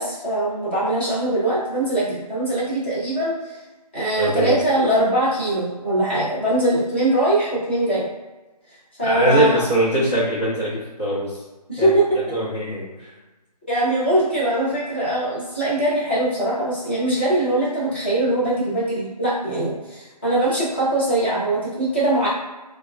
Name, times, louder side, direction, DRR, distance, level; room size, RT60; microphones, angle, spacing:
voice 1, 0.0-3.3 3.9-8.1 9.0-9.6 11.7-12.0 13.7-22.3, right 1 dB, 15° left, -9 dB, 0.7 m, -21 dB
voice 2, 4.2-4.5 9.0-11.3 11.8-11.9 12.3-12.8, right 1 dB, 40° left, -10 dB, 1.1 m, -21 dB
3.3 x 2.3 x 2.3 m, 1.1 s
figure-of-eight pair, 165°, 21 cm